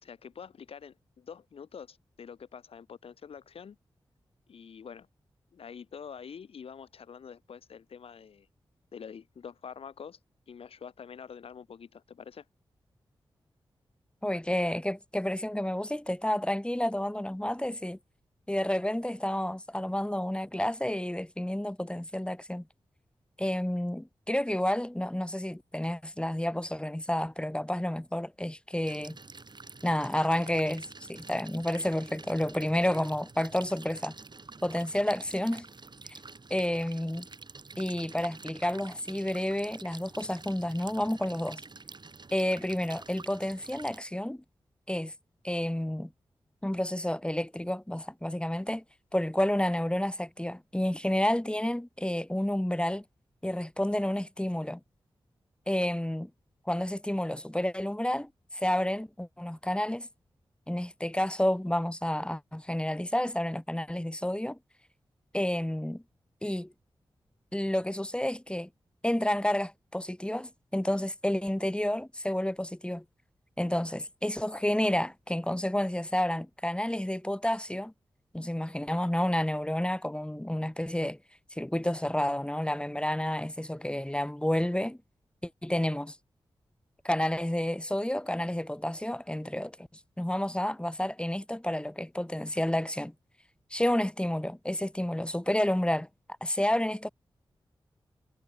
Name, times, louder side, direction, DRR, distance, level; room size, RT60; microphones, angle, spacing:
voice 1, 0.0-3.8 4.5-5.1 5.5-8.5 8.9-10.2 10.5-12.4, left 7 dB, 85° left, 3.7 m, -46 dB
voice 2, 14.2-18.0 18.5-22.6 23.4-29.2 29.8-34.2 34.6-35.7 36.5-37.3 37.8-41.6 42.3-44.4 44.9-45.1 45.4-46.1 46.6-48.8 49.1-53.0 53.4-54.8 55.7-56.3 56.7-60.1 60.7-64.6 65.3-66.0 66.4-66.7 67.5-68.7 69.0-73.0 73.6-77.9 78.3-81.2 81.5-85.0 85.4-86.2 87.0-89.9 90.2-93.1 93.7-96.1 96.4-97.1, left 1 dB, 10° left, 3.9 m, -30 dB
sound 1, 28.9-44.0, right 3 dB, 50° right, 6.6 m, -48 dB
cardioid pair, 45°, 10 cm